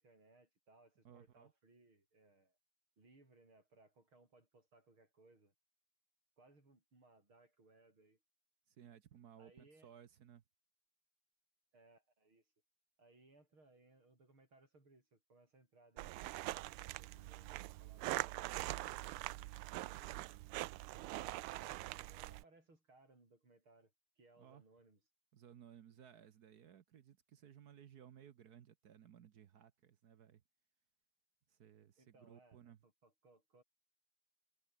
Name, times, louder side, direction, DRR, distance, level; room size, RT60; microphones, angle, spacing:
voice 1, 0.0-2.6 3.0-5.5 6.4-8.2 9.4-9.9 11.7-12.5 13.0-16.4 17.0-18.5 20.9-25.0 32.0-33.6, right 2 dB, 70° right, 8.9 m, -67 dB
voice 2, 1.0-1.5 8.7-10.4 20.1-20.2 24.4-24.6 25.3-30.4 31.5-32.8, right 9 dB, 55° right, 1.3 m, -60 dB
sound 1, 16.0-22.4, right 18 dB, 90° right, 1.5 m, -43 dB
omnidirectional pair, 2.3 m